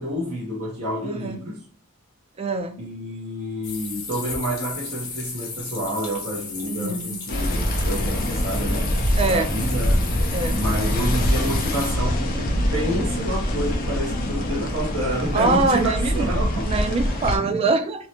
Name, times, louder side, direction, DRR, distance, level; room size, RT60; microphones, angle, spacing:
voice 1, 0.0-1.6 2.8-9.0 9.3-10.1 10.5-17.0, equal, 70° right, 0.8 m, -29 dB
voice 2, 1.0-1.4 2.4-2.7 6.6-7.2 9.2-9.6 10.3-10.6 15.3-16.3 16.6-18.1, right 3 dB, 30° right, 0.3 m, -24 dB
sound 1, 3.6-11.9, left 4 dB, 70° left, 0.8 m, -35 dB
sound 2, 7.3-17.4, equal, 40° left, 0.5 m, -24 dB
2.7 x 2.1 x 2.8 m
head